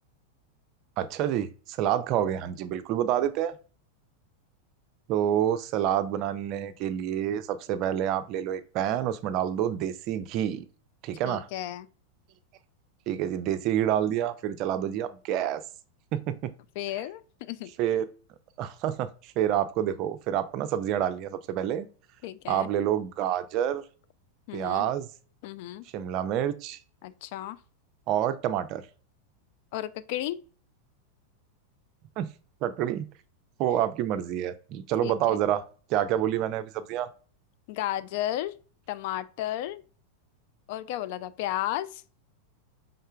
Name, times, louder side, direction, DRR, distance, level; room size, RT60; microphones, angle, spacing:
voice 1, 1.0-3.6 5.1-10.6 11.0-11.5 13.1-15.6 16.1-16.5 17.8-18.0 18.6-21.9 22.5-23.8 24.5-25.1 25.9-26.8 28.1-28.8 32.2-32.3 32.6-33.0 33.6-35.6 35.9-37.1, right 11 dB, 40° right, 0.4 m, -28 dB
voice 2, 11.3-11.9 14.7-15.0 16.8-17.7 22.2-22.7 24.5-24.8 25.4-25.9 27.0-27.6 29.7-30.4 35.0-35.4 37.7-38.5 38.9-39.8 40.7-42.0, left 13 dB, 50° left, 0.3 m, -33 dB
5.4 x 3.7 x 2.3 m
figure-of-eight pair, 90°, 0 cm